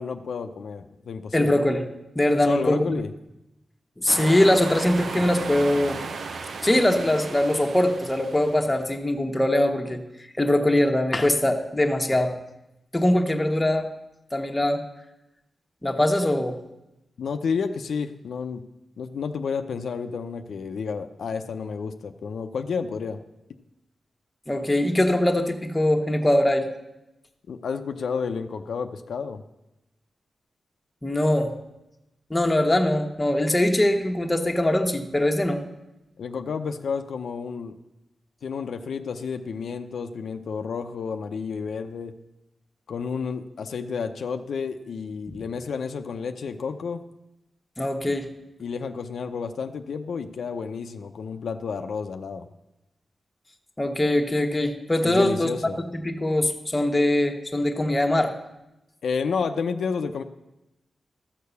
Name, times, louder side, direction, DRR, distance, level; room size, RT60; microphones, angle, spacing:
voice 1, 0.0-1.6 2.4-3.1 17.2-18.6 19.0-23.2 27.5-29.4 36.2-37.8 38.4-42.1 42.9-47.0 48.0-48.1 48.6-52.5 55.0-55.8 59.0-60.2, left 5 dB, 80° left, 7 dB, 0.6 m, -31 dB
voice 2, 1.3-1.9 2.1-3.0 4.0-6.0 6.6-10.0 10.4-12.3 12.9-13.9 14.3-14.8 15.8-16.6 24.5-26.7 31.0-31.5 32.3-35.6 45.3-45.4 47.8-48.3 53.8-55.5 55.9-58.3, left 1 dB, 15° left, 3 dB, 1.1 m, -22 dB
sound 1, 4.1-8.8, right 4 dB, 70° right, 0.8 m, -35 dB
13.0 x 6.7 x 6.9 m, 0.94 s
wide cardioid pair, 125°, 0 cm